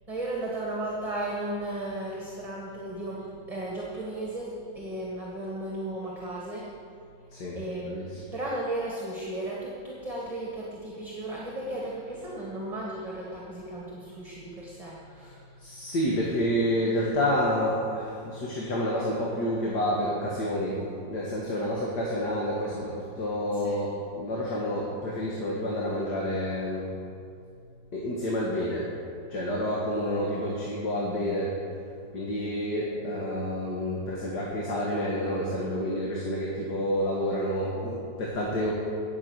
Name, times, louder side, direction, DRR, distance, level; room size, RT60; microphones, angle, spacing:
voice 1, 0.1-6.7 7.5-15.4 21.6-21.8 23.5-23.8, right 1 dB, 20° right, -4 dB, 1.7 m, -35 dB
voice 2, 7.9-8.2 15.6-26.9 27.9-28.9 29.3-31.5 32.1-38.7, equal, 70° left, -4 dB, 2.4 m, -29 dB
18.0 x 7.4 x 6.4 m, 2.4 s
omnidirectional pair, 1.9 m